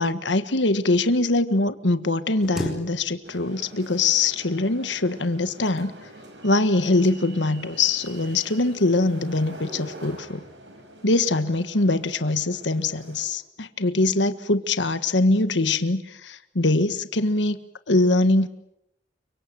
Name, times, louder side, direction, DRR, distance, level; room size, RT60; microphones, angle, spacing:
voice 1, 0.0-5.9 6.4-10.4 11.0-18.5, left 2 dB, 90° left, 11 dB, 1.6 m, -23 dB
sound 1, 2.4-3.5 3.8-4.5 5.4-6.2 6.8-7.2 7.6-7.8, equal, ahead, 4.5 m, -36 dB
sound 2, 3.2-13.3, right 1 dB, 80° right, 6.6 m, -45 dB
30.0 x 25.0 x 7.7 m, 0.82 s
head